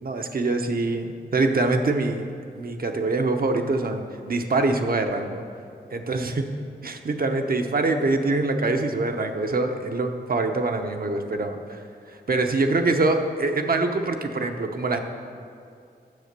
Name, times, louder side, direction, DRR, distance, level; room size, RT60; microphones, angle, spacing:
voice 1, 0.0-2.3 2.6-5.4 5.9-6.5 6.8-11.8 12.1-15.0, right 3 dB, 55° right, 5 dB, 0.9 m, -24 dB
9.8 x 7.5 x 6.7 m, 2.5 s
wide cardioid pair, 105°, 18 cm